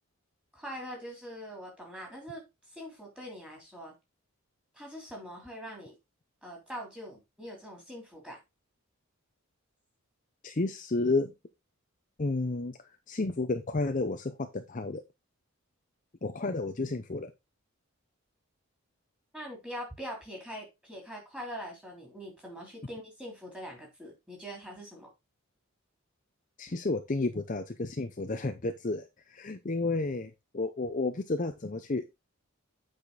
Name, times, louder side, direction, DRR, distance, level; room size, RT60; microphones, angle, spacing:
voice 1, 0.5-3.9 4.7-5.9 6.4-8.4 19.3-25.1, equal, 5° right, 3.2 m, -43 dB
voice 2, 10.4-11.3 12.2-12.8 13.1-15.0 16.2-17.3 26.6-29.0 29.3-32.2, left 3 dB, 35° left, 0.6 m, -31 dB
8.4 x 5.1 x 4.0 m
head